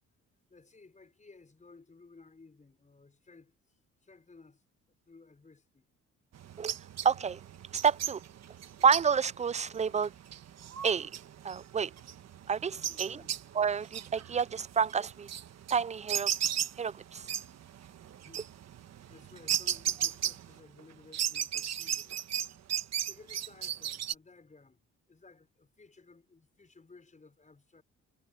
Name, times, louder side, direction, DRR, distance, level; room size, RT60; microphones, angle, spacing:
voice 1, 0.5-4.6 5.1-5.9 12.8-13.5 18.2-18.6 19.1-22.2 23.0-27.8, left 3 dB, 25° left, 6.2 m, -57 dB
sound 1, 6.3-20.8 21.1-24.1, right 10 dB, 60° right, 1.4 m, -36 dB
voice 2, 7.0-7.4 7.8-8.2 8.8-10.1 10.8-11.1 11.4-11.9 12.5-13.2 13.5-15.3 15.7-16.3 16.8-17.3, right 6 dB, 25° right, 0.4 m, -29 dB
cardioid pair, 90°, 30 cm